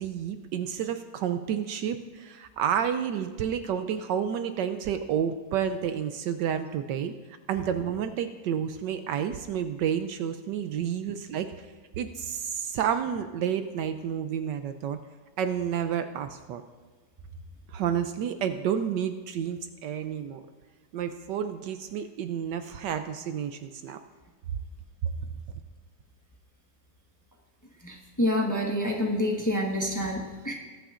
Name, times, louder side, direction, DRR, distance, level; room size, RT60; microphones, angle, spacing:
voice 1, 0.0-7.1 7.5-11.7 12.0-15.0 15.4-16.6 17.7-20.4 20.9-24.0, right 8 dB, 75° right, 9 dB, 1.2 m, -30 dB
voice 2, 27.8-30.5, left 1 dB, 10° left, 0 dB, 1.1 m, -27 dB
21.0 x 9.0 x 2.5 m, 1.4 s
omnidirectional pair, 2.1 m